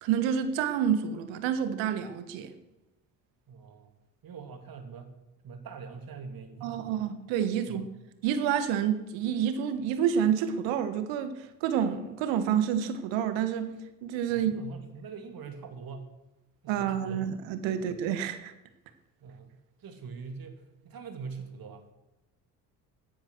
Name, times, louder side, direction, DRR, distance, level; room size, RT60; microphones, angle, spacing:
voice 1, 0.0-2.5 6.6-7.8 8.2-13.7 14.0-14.5 16.7-18.5, right 8 dB, 65° right, 1.8 m, -28 dB
voice 2, 3.5-3.9 4.2-5.2 5.4-7.1 7.7-7.8 14.3-16.1 16.6-17.2 17.7-17.9 19.2-21.9, right 5 dB, 45° right, 3.0 m, -43 dB
16.5 x 10.5 x 6.5 m
hypercardioid pair, 55°, 49 cm